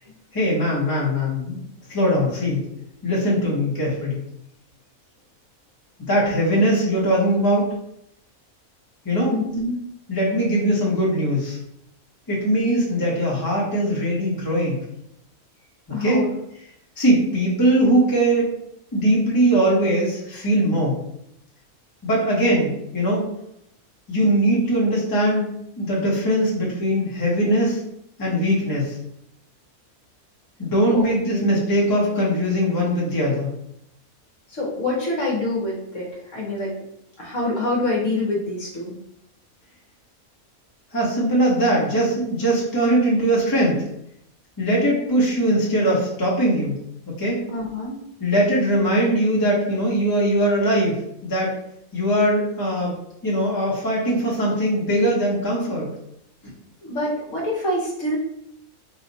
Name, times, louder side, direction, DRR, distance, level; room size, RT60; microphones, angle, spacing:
voice 1, 0.3-1.6 1.9-2.6 3.0-4.2 6.1-7.7 9.0-9.4 10.1-11.6 12.3-14.8 16.0-16.2 17.0-18.5 18.9-21.0 22.0-23.3 24.1-25.5 25.8-27.8 28.2-29.0 30.6-33.5 40.9-43.8 44.6-46.8 47.1-47.4 48.2-51.5 51.9-52.9 53.2-55.9, right 1 dB, 15° left, -5 dB, 1.0 m, -21 dB
voice 2, 9.3-9.7 15.9-16.3 30.9-31.5 34.5-36.7 37.2-38.9 47.5-48.0 56.8-58.2, left 2 dB, 60° left, -3 dB, 1.3 m, -26 dB
4.2 x 2.3 x 4.0 m, 0.76 s
omnidirectional pair, 1.5 m